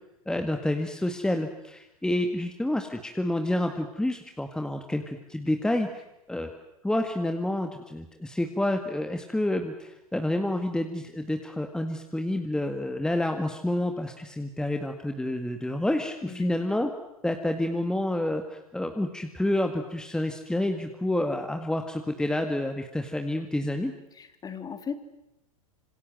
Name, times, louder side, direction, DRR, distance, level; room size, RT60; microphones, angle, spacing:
voice 1, 0.3-6.0 6.3-6.5 6.8-16.9 17.2-23.9, left 1 dB, 5° left, 5 dB, 1.9 m, -29 dB
voice 2, 24.1-25.0, left 6 dB, 20° left, 10 dB, 2.8 m, -37 dB
26.5 x 26.0 x 7.7 m, 0.89 s
hypercardioid pair, 100°, 19 cm